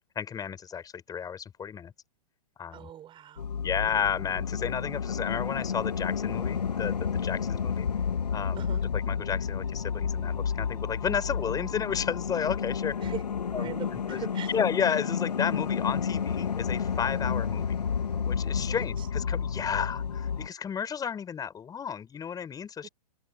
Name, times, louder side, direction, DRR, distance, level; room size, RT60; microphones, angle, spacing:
voice 1, 0.2-1.9 2.6-2.9 3.6-7.9 8.3-8.7 8.9-13.1 13.5-17.8 18.2-22.9, left 7 dB, 20° left, 6.2 m, -32 dB
voice 2, 2.7-3.5 8.6-8.8 11.9-12.0 13.0-14.5 18.5-19.1 22.8-22.9, right 10 dB, 25° right, 6.1 m, -42 dB
sound 1, 3.4-20.5, left 7 dB, 85° left, 1.8 m, -31 dB
hypercardioid pair, 115°, 20 cm